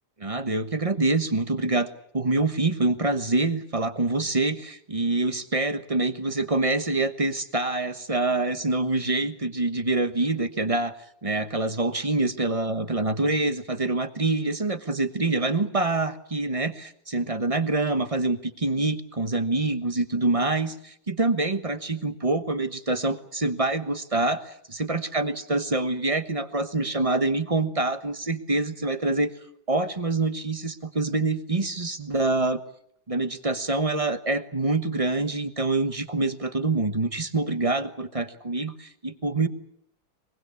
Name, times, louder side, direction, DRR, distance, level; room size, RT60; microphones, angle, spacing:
voice 1, 0.2-11.0 11.2-29.3 29.7-32.6 33.1-39.5, right 2 dB, 25° right, 11 dB, 0.8 m, -26 dB
24.0 x 22.0 x 8.2 m, 0.70 s
omnidirectional pair, 2.2 m